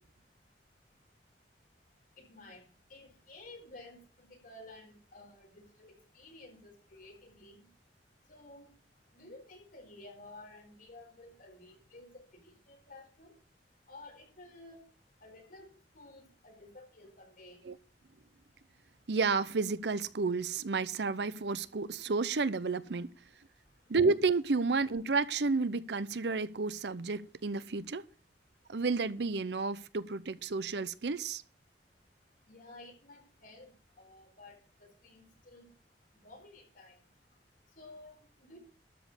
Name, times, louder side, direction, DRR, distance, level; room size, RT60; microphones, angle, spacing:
voice 1, 2.2-7.7 8.3-8.7 9.1-13.3 13.9-14.8 15.2-17.7 32.5-35.7 36.2-37.0 37.8-38.6, left 2 dB, 55° left, 2 dB, 4.4 m, -53 dB
voice 2, 19.1-23.1 23.9-28.0 28.7-31.4, right 4 dB, 70° right, 17 dB, 0.7 m, -31 dB
13.0 x 5.1 x 8.2 m, 0.38 s
head